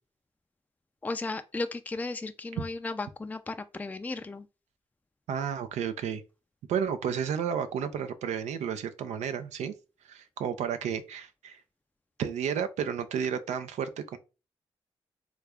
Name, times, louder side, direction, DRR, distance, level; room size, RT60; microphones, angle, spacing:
voice 1, 1.0-4.5, left 3 dB, 15° left, 0.3 m, -35 dB
voice 2, 5.3-6.2 6.7-9.7 10.1-11.6 12.2-14.2, right 8 dB, 85° right, 0.4 m, -32 dB
3.1 x 2.4 x 3.4 m
supercardioid pair, 50°, 12 cm